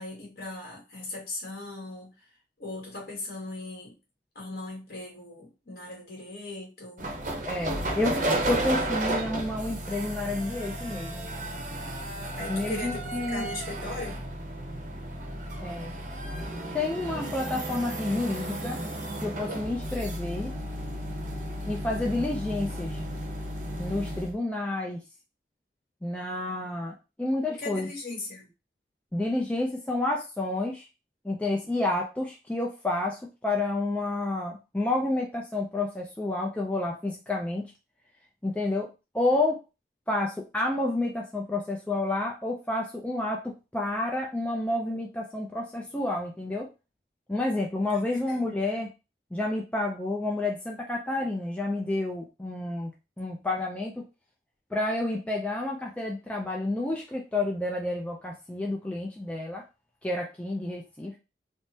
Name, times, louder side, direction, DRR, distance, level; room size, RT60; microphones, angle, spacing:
voice 1, 0.0-2.1 2.6-4.0 4.3-7.1 12.3-14.2 27.6-28.5 45.9-46.0 46.4-46.5 47.9-48.4, left 2 dB, 55° left, -2 dB, 1.4 m, -39 dB
sound 1, 7.0-24.3, right 1 dB, 45° right, 0.7 m, -33 dB
voice 2, 7.4-8.2 8.5-11.3 12.5-13.5 15.6-15.9 16.7-18.8 19.2-20.5 21.7-23.0 23.8-25.0 26.0-27.9 29.1-30.9 31.2-37.7 38.4-39.6 40.1-46.7 47.3-48.9 49.3-52.9 53.2-54.0 54.7-59.6 60.0-61.1, left 2 dB, 5° left, -1 dB, 0.3 m, -30 dB
3.4 x 2.0 x 2.7 m, 0.28 s
head